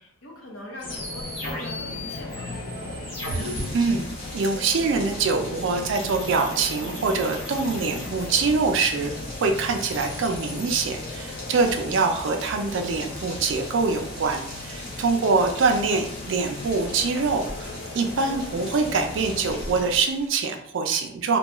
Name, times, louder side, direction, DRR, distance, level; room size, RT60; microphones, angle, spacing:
voice 1, 0.0-2.5 11.7-11.9 15.2-15.5, left 1 dB, 70° left, -1 dB, 0.8 m, -42 dB
sound 1, 0.8-3.6 5.9-8.8 9.6-10.8, left 1 dB, 90° left, 1.2 m, -37 dB
sound 2, 0.8-20.0, left 2 dB, 45° left, 0.3 m, -37 dB
Rain, 3.0-20.4, left 1 dB, 25° left, 0.8 m, -41 dB
voice 2, 3.3-4.1 4.3-9.1 9.4-17.5 17.9-21.4, right 4 dB, 60° right, 4 dB, 0.3 m, -24 dB
2.2 x 2.2 x 2.9 m, 0.76 s
head